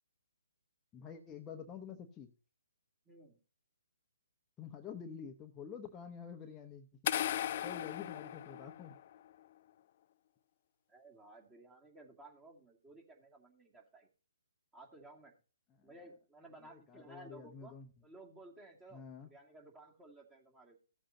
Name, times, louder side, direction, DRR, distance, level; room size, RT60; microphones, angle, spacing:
voice 1, 0.9-2.3 4.6-7.1 7.6-9.0 15.8-15.9 16.6-17.9 18.9-19.3, left 7 dB, 15° left, 3 dB, 0.9 m, -48 dB
voice 2, 3.1-3.4 10.9-14.1 14.7-15.3 15.8-17.8 18.0-20.8, right 2 dB, 15° right, 1 dB, 2.3 m, -56 dB
sound 1, 7.1-9.2, left 11 dB, 45° left, 0.4 m, -37 dB
15.5 x 7.6 x 2.8 m, 0.36 s
hypercardioid pair, 140°, 0 cm